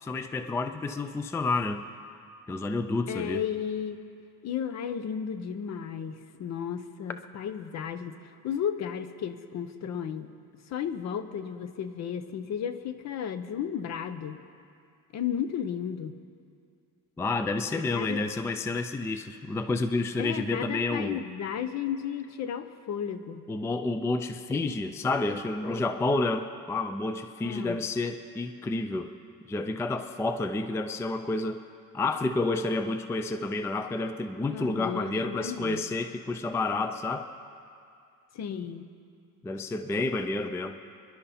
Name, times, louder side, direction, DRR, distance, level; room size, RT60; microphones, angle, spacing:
voice 1, 0.0-1.8 2.5-3.4 17.2-21.2 23.5-29.1 29.5-31.6 31.9-37.3 39.4-40.8, left 3 dB, 10° left, 9 dB, 0.3 m, -30 dB
voice 2, 3.1-4.0 4.4-8.2 8.4-10.3 10.7-14.4 15.1-16.2 17.7-18.2 20.2-23.5 27.4-27.8 34.5-35.8 38.3-38.9, left 8 dB, 50° left, 11 dB, 0.8 m, -34 dB
25.0 x 11.5 x 4.2 m, 2.4 s
cardioid pair, 135°, 34 cm